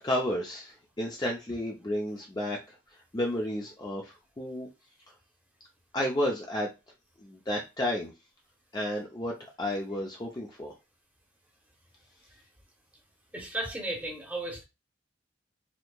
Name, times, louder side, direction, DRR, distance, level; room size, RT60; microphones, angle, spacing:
voice 1, 0.0-2.8 3.1-4.7 5.9-6.7 7.2-8.1 8.7-10.7, left 1 dB, 20° left, 0.4 m, -32 dB
voice 2, 13.3-14.6, right 1 dB, 10° right, 0.9 m, -34 dB
4.3 x 2.8 x 2.2 m
head